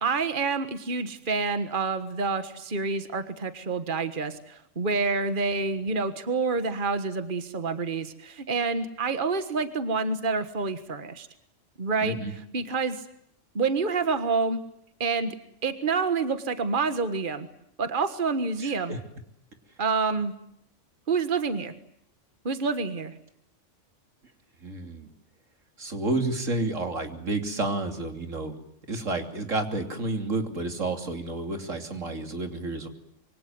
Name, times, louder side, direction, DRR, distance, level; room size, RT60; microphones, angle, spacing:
voice 1, 0.0-11.3 11.8-12.2 12.5-13.0 13.5-14.6 15.0-15.3 15.6-17.5 17.8-18.9 19.8-20.3 21.1-21.7 22.4-23.1, right 4 dB, 40° right, 10 dB, 1.7 m, -27 dB
voice 2, 12.0-12.3 18.6-19.0 24.6-25.1 25.8-28.6 28.9-32.9, right 2 dB, 85° right, 6 dB, 3.4 m, -30 dB
26.0 x 24.0 x 9.6 m, 0.75 s
omnidirectional pair, 1.3 m